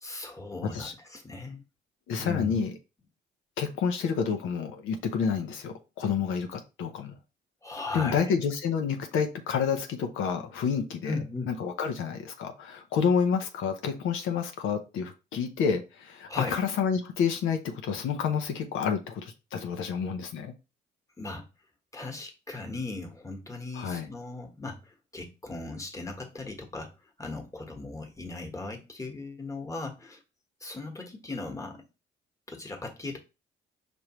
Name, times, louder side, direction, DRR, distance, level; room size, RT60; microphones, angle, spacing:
voice 1, 0.0-1.6 2.2-2.6 7.6-8.2 11.0-11.6 16.3-16.6 21.2-21.5 21.9-26.9 27.2-30.2 30.6-31.8 32.5-33.2, left 3 dB, 15° left, 1.3 m, -37 dB
voice 2, 2.1-2.7 3.6-7.1 7.9-11.2 11.5-20.5 23.7-24.1, left 6 dB, 80° left, 0.8 m, -29 dB
5.2 x 3.1 x 3.0 m
cardioid pair, 90°, 20 cm